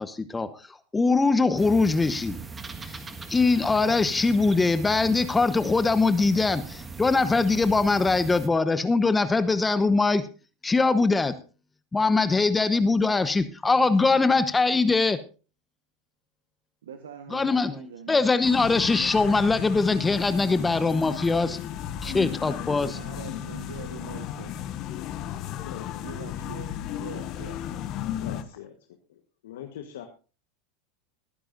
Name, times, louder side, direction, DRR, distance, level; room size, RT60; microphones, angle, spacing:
voice 1, 0.0-2.4 2.8-3.0 3.3-10.3 10.6-11.3 11.9-15.2 17.3-21.6 22.0-23.0, left 3 dB, 15° left, 13 dB, 1.0 m, -22 dB
sound 1, 1.6-8.5, right 4 dB, 20° right, 1.6 m, -40 dB
voice 2, 16.8-18.2 22.9-24.5 26.0-26.7 26.9-27.8, right 7 dB, 85° right, 7 dB, 1.2 m, -43 dB
sound 2, 18.4-28.4, left 11 dB, 50° left, 1.2 m, -34 dB
voice 3, 25.6-26.0 28.2-28.7 29.1-30.0, left 10 dB, 75° left, 5 dB, 1.3 m, -42 dB
21.0 x 9.9 x 2.6 m, 0.34 s
hypercardioid pair, 95°, 0 cm